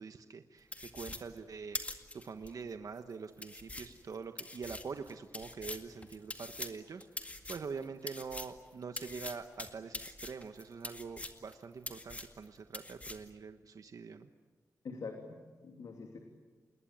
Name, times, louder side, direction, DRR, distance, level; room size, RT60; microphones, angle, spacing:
voice 1, 0.0-14.3, right 5 dB, 70° right, 7 dB, 1.2 m, -45 dB
sound 1, 0.7-2.5 3.0-3.1 3.4-8.6 9.0-11.5 11.8-12.5 12.7-13.3, left 2 dB, 20° left, 2.0 m, -44 dB
voice 2, 14.8-16.2, left 4 dB, 90° left, 3 dB, 3.0 m, -45 dB
28.5 x 21.0 x 9.2 m, 1.4 s
wide cardioid pair, 120°, 6 cm